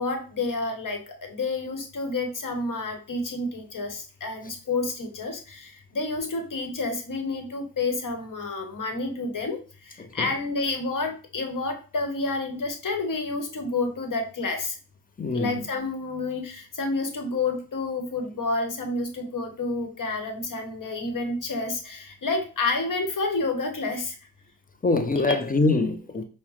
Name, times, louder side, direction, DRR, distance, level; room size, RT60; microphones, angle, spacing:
voice 1, 0.0-9.6 10.1-14.7 15.3-24.1 25.2-25.4, left 3 dB, 60° left, 1.1 m, -29 dB
voice 2, 10.0-10.3 15.2-15.6 24.8-26.2, left 3 dB, 25° left, 0.6 m, -24 dB
5.2 x 2.1 x 3.1 m
cardioid pair, 45°, 36 cm